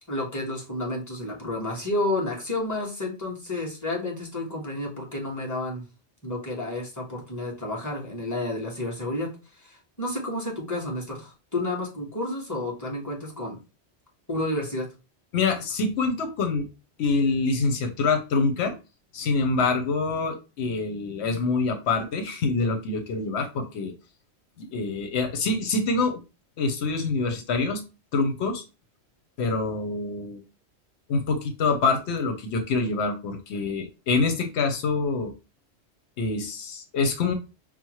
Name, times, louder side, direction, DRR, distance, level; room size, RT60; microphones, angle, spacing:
voice 1, 0.1-5.8 6.2-9.3 9.5-13.6 14.3-14.9, left 2 dB, 15° left, -3 dB, 1.3 m, -30 dB
voice 2, 15.3-16.7 17.0-18.7 19.1-23.9 24.6-26.2 26.6-27.8 28.1-28.6 29.4-30.4 31.1-35.3 36.2-37.3, left 3 dB, 85° left, 6 dB, 1.0 m, -25 dB
5.8 x 2.0 x 3.0 m, 0.30 s
omnidirectional pair, 1.1 m